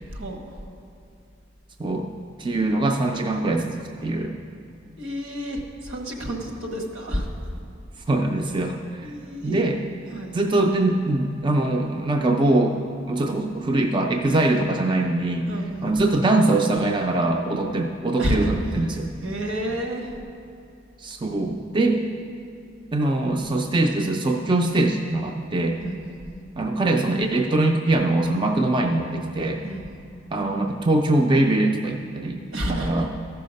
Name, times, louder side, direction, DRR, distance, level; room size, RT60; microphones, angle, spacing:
voice 1, 0.1-0.6 5.0-7.5 9.0-9.6 10.1-10.3 15.5-15.9 17.5-17.6 18.2-18.8 19.2-20.2 25.8-26.4 29.6-29.8 32.5-33.1, equal, 75° right, 1 dB, 1.4 m, -30 dB
voice 2, 2.4-4.4 8.1-9.1 9.4-9.8 10.3-12.8 13.1-15.4 15.8-19.1 21.0-22.1 22.9-25.8 26.6-29.6 30.3-33.1, right 2 dB, 25° right, 3 dB, 0.4 m, -22 dB
14.0 x 5.7 x 5.2 m, 2.6 s
head